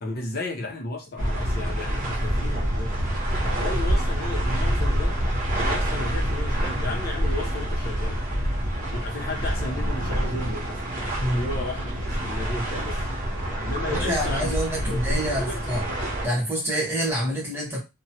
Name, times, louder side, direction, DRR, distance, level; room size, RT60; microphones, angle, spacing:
voice 1, 0.0-2.9 3.4-5.1 5.6-8.2 8.9-10.8 11.3-13.0 13.6-14.6 14.9-15.6, left 2 dB, 50° left, 0.7 m, -34 dB
sound 1, 1.2-16.3, equal, 40° right, 0.8 m, -26 dB
voice 2, 11.2-11.6 13.8-15.8 16.2-17.8, equal, 10° right, 1.0 m, -27 dB
2.9 x 2.2 x 2.7 m
head